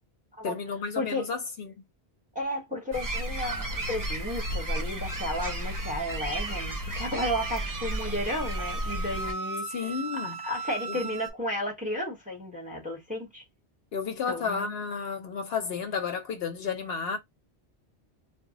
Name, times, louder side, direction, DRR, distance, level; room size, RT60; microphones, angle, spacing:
voice 1, 0.4-1.8 9.7-10.4 10.9-11.0 13.9-17.2, left 5 dB, 65° left, 0.8 m, -32 dB
voice 2, 1.0-1.3 2.3-9.7 10.2-13.4 14.3-14.7, left 1 dB, 10° right, 0.8 m, -33 dB
sound 1, 2.9-9.3, right 1 dB, 30° right, 0.4 m, -33 dB
sound 2, 3.7-11.3, right 4 dB, 60° right, 0.7 m, -40 dB
2.0 x 2.0 x 3.7 m
omnidirectional pair, 1.1 m